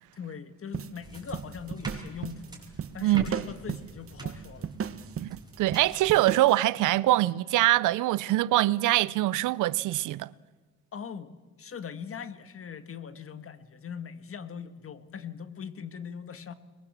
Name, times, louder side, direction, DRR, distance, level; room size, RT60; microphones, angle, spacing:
voice 1, 0.1-2.6 2.9-4.7 10.9-11.3 11.6-16.5, left 7 dB, 45° left, 1.7 m, -41 dB
sound 1, 0.7-6.6, right 8 dB, 45° right, 1.1 m, -36 dB
sound 2, 1.0-6.2, right 3 dB, 15° right, 5.6 m, -44 dB
voice 2, 5.6-10.3, right 16 dB, 85° right, 0.6 m, -23 dB
23.0 x 20.5 x 7.4 m
cardioid pair, 90°, 30 cm